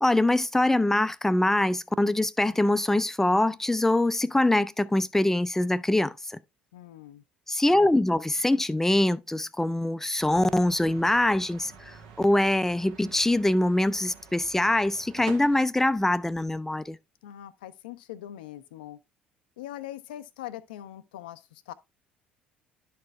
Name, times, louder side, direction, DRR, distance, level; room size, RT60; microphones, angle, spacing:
voice 1, 0.0-6.4 7.5-17.0, left 1 dB, 5° left, 0.5 m, -24 dB
voice 2, 6.7-7.2 17.2-19.0 19.6-21.7, left 13 dB, 70° left, 0.5 m, -42 dB
sound 1, 10.2-15.6, right 5 dB, 65° right, 1.3 m, -48 dB
11.5 x 4.3 x 3.3 m
figure-of-eight pair, 55°, 5 cm